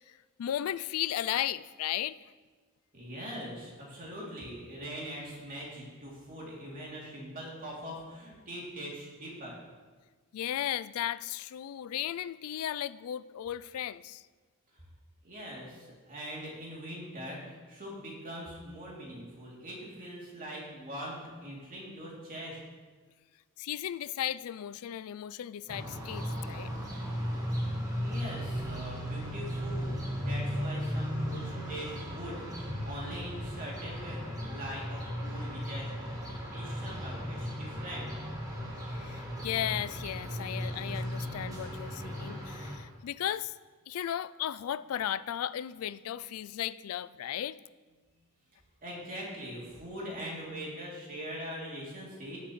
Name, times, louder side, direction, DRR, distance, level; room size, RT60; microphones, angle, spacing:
voice 1, 0.1-2.2 10.3-14.2 23.6-26.7 38.9-43.6 43.9-47.6, left 11 dB, 70° left, 0.3 m, -35 dB
voice 2, 2.9-9.6 15.2-22.6 28.0-38.1 48.8-52.4, equal, 40° right, 2.9 m, -42 dB
sound 1, 25.7-42.8, equal, 15° right, 1.5 m, -36 dB
18.0 x 7.3 x 3.1 m
head